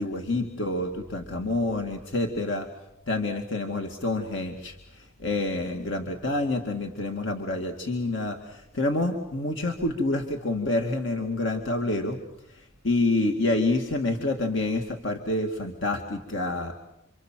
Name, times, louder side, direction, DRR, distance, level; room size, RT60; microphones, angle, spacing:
voice 1, 0.0-2.7 3.1-12.2 12.5-16.7, left 2 dB, 60° left, 4 dB, 2.3 m, -28 dB
28.5 x 26.0 x 7.6 m, 0.83 s
head